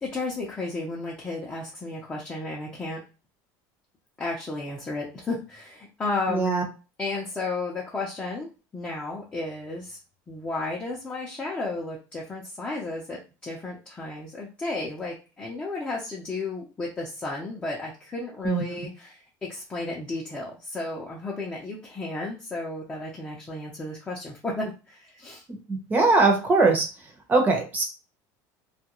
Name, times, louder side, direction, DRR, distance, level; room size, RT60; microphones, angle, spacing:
voice 1, 0.0-3.0 4.2-6.6 7.0-10.0 10.3-25.4, left 2 dB, 15° left, -4 dB, 0.6 m, -33 dB
voice 2, 6.3-6.6 18.4-18.6 25.7-26.9 27.3-27.8, right 3 dB, 20° right, 3 dB, 0.8 m, -21 dB
2.3 x 2.2 x 2.9 m, 0.32 s
cardioid pair, 140°, 9 cm